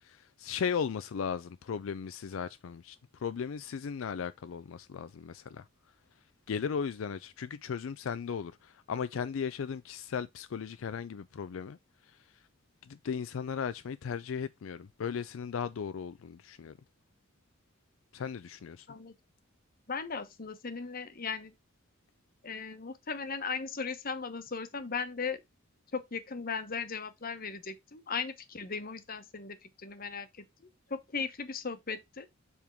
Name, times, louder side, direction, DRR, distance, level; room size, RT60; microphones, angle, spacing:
voice 1, 0.0-5.7 6.5-11.8 12.1-12.2 12.8-16.7 18.1-18.9, left 6 dB, 85° left, 0.4 m, -36 dB
voice 2, 19.9-21.5 22.4-25.4 25.9-32.3, left 5 dB, 45° left, 1.0 m, -37 dB
7.1 x 3.6 x 4.5 m
head